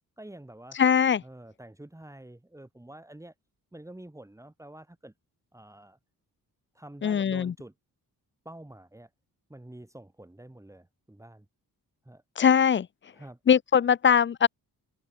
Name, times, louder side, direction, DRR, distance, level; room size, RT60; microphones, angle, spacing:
voice 1, 0.2-0.8 1.2-3.3 3.7-5.1 5.5-6.0 6.7-7.7 8.4-9.1 9.5-11.5 12.0-12.2 13.1-13.4, right 1 dB, 10° right, 4.6 m, -47 dB
voice 2, 0.8-1.2 7.0-7.5 12.4-12.9 13.5-14.5, left 7 dB, 35° left, 0.4 m, -21 dB
wide cardioid pair, 150°, 37 cm